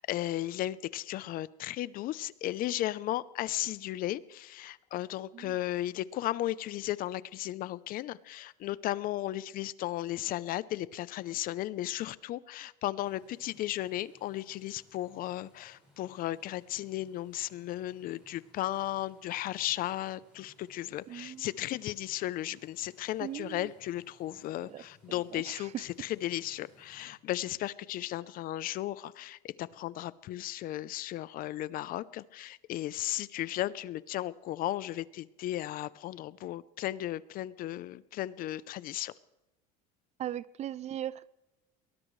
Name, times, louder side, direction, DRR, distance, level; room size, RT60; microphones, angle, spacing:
voice 1, 0.0-39.1, left 14 dB, 45° left, 0.6 m, -35 dB
sound 1, 13.0-27.1, equal, 5° right, 6.9 m, -64 dB
voice 2, 21.1-21.5 23.2-23.7 24.6-24.8 25.1-25.9 40.2-41.2, right 11 dB, 35° right, 0.5 m, -39 dB
22.5 x 19.5 x 3.2 m
cardioid pair, 130°, 20 cm